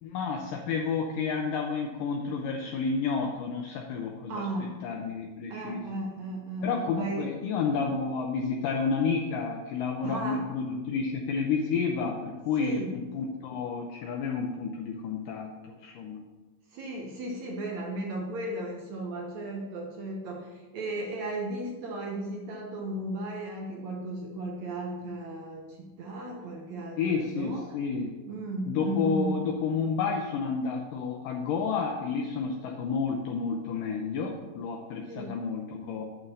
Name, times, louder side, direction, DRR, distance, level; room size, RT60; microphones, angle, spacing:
voice 1, 0.0-5.8 6.6-16.2 27.0-28.1 28.7-36.0, left 5 dB, 75° left, 1 dB, 2.1 m, -30 dB
voice 2, 4.3-4.7 5.5-7.3 10.0-10.4 12.6-12.9 16.7-27.8 28.3-29.4 35.1-35.3, right 1 dB, 65° right, -1 dB, 1.9 m, -35 dB
7.3 x 6.5 x 5.5 m, 1.2 s
omnidirectional pair, 4.4 m